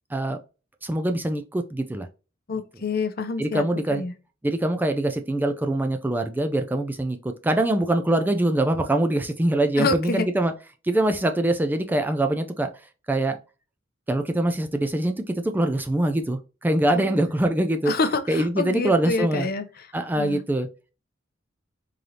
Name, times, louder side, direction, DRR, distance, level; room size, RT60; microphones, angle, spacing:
voice 1, 0.8-2.1 3.4-4.0 4.4-10.5 10.8-12.7 13.1-13.4 14.1-17.9 18.3-19.5 19.9-20.7, right 1 dB, 10° right, 0.3 m, -23 dB
voice 2, 2.5-3.6 3.9-4.1 9.8-10.3 16.9-17.3 17.9-19.9 20.2-20.4, left 3 dB, 50° left, 0.6 m, -27 dB
3.8 x 3.3 x 2.8 m
head